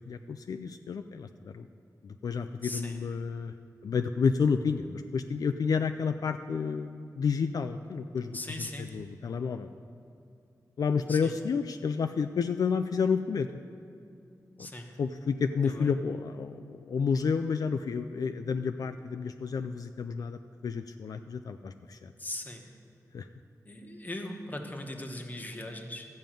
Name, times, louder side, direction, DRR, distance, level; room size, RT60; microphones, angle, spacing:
voice 1, 0.1-1.7 2.0-3.5 3.8-9.7 10.8-13.5 14.6-14.7 15.0-22.1 23.1-23.3, left 5 dB, 70° left, 8 dB, 0.4 m, -30 dB
voice 2, 2.6-3.0 8.3-9.0 11.1-11.3 14.6-14.9 15.6-15.9 22.2-22.7 23.6-26.1, left 1 dB, 25° left, 3 dB, 1.1 m, -39 dB
13.5 x 5.3 x 9.0 m, 2.6 s
wide cardioid pair, 135°, 7 cm